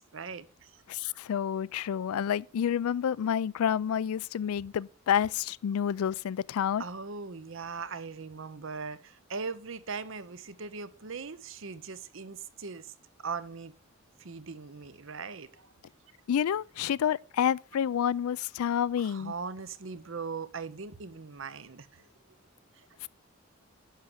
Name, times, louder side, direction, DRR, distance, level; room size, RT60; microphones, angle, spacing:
voice 1, 0.0-0.8 6.8-12.9 13.2-13.7 14.2-15.7 19.0-22.1 22.8-22.9, right 5 dB, 65° right, 0.8 m, -40 dB
voice 2, 0.9-6.8 16.3-19.3, left 8 dB, 90° left, 0.3 m, -29 dB
10.5 x 6.0 x 4.9 m
head